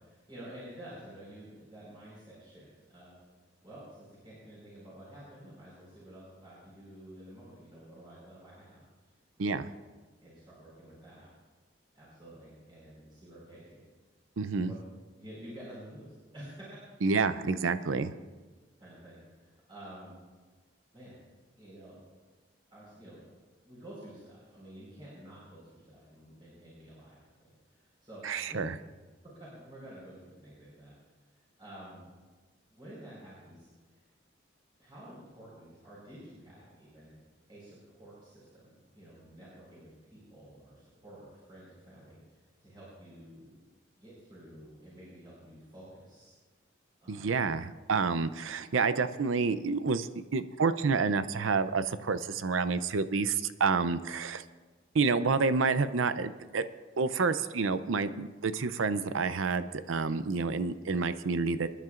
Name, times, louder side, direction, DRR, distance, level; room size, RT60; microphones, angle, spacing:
voice 1, 0.0-3.2 3.6-9.1 9.4-9.7 10.2-11.3 11.9-13.8 14.6-14.7 15.2-16.7 18.8-20.2 20.9-21.2 21.6-22.0 22.7-23.2 23.6-28.2 28.5-28.6 29.4-30.9 31.3-32.1 32.7-34.0 34.8-37.1 37.5-43.6 43.9-46.3 47.0-47.4, right 1 dB, 25° right, -8 dB, 4.6 m, -50 dB
voice 2, 14.4-14.7 17.0-18.1 28.2-28.7 47.1-54.4 54.9-56.6 57.0-61.7, right 4 dB, 90° right, 12 dB, 0.6 m, -29 dB
25.5 x 10.5 x 2.5 m, 1.3 s
head